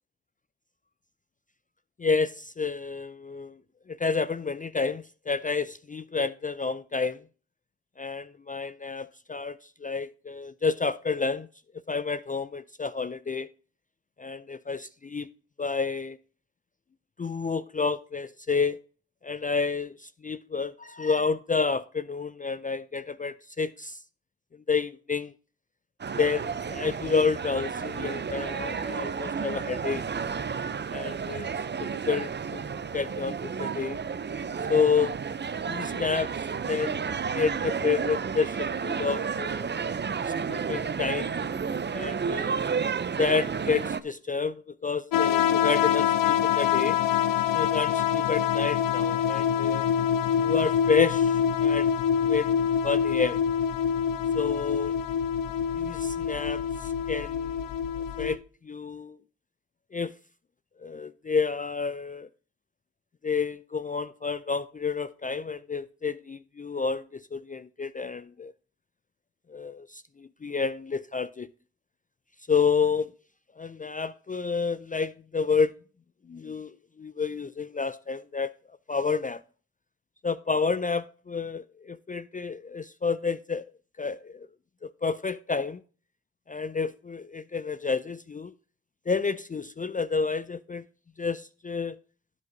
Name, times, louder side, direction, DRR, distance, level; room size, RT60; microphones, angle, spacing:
voice 1, 2.0-3.6 3.9-7.2 8.0-11.5 11.9-13.5 14.2-15.3 15.6-16.2 17.2-18.8 19.2-24.0 24.7-25.3 26.2-30.0 30.9-31.5 31.8-34.0 34.7-35.1 35.7-36.3 36.7-39.7 40.3-41.5 41.9-42.6 43.2-47.0 47.5-49.9 50.4-51.9 52.2-53.4 54.3-54.9 55.7-57.6 58.2-59.2 59.9-60.1 60.8-62.3 63.2-68.5 69.5-71.5 72.5-73.1 73.6-75.7 76.3-78.5 78.9-79.4 80.2-83.6 84.0-84.5 84.8-85.8 86.5-88.5 89.1-90.8 91.2-92.0, left 5 dB, 25° left, 0.4 m, -29 dB
sound 1, 26.0-44.0, right 6 dB, 35° right, 0.6 m, -31 dB
sound 2, 45.1-58.4, left 8 dB, 85° left, 0.7 m, -25 dB
12.5 x 7.8 x 2.7 m
supercardioid pair, 45°, 33 cm